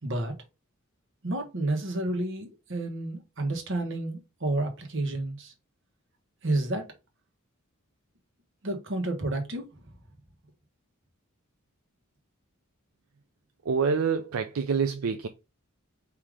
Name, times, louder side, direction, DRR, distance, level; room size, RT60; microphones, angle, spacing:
voice 1, 0.0-0.3 1.2-5.5 6.4-6.9 8.6-9.7, right 2 dB, 60° right, 1.3 m, -30 dB
voice 2, 13.7-15.3, right 5 dB, 80° right, 0.5 m, -26 dB
4.8 x 2.8 x 3.7 m
head